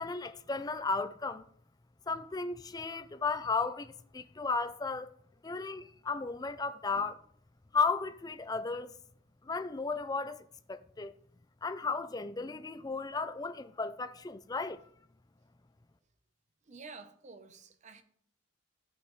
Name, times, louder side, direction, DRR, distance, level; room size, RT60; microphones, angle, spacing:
voice 1, 0.0-1.4 2.1-5.1 5.4-7.2 7.7-8.9 9.4-10.4 10.7-11.1 11.6-14.8, left 4 dB, 20° left, 0.4 m, -34 dB
voice 2, 16.7-18.0, right 4 dB, 35° right, 0.7 m, -50 dB
14.5 x 5.3 x 3.1 m
head